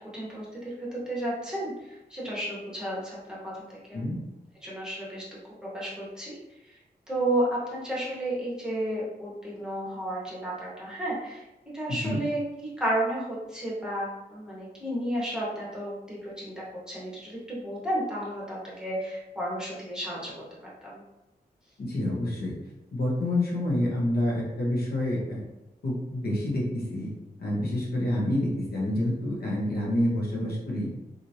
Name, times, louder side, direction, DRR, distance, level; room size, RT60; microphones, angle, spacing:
voice 1, 0.1-3.2 3.4-3.6 3.9-4.0 4.6-5.2 5.6-6.3 6.6-6.8 7.1-11.4 11.7-20.3 20.8-21.0, right 1 dB, 5° right, -6 dB, 1.1 m, -32 dB
voice 2, 21.8-22.5 22.9-25.4 25.8-27.1 27.4-30.9, left 1 dB, 65° left, -4 dB, 0.9 m, -28 dB
2.9 x 2.5 x 2.7 m, 0.97 s
wide cardioid pair, 95°, 17 cm